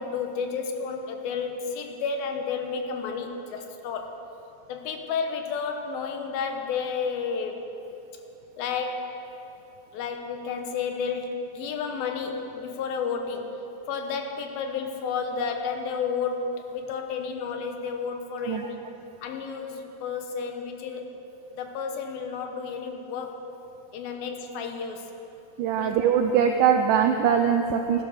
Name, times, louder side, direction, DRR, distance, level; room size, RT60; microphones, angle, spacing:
voice 1, 0.0-4.1 4.7-7.6 8.6-9.1 9.9-13.6 13.9-18.8 19.2-21.1 21.5-23.4 23.9-25.1 25.8-26.0, left 5 dB, 85° left, 4 dB, 2.9 m, -31 dB
voice 2, 25.6-28.0, right 8 dB, 75° right, 4 dB, 2.0 m, -22 dB
15.5 x 11.5 x 6.5 m, 3.0 s
omnidirectional pair, 4.2 m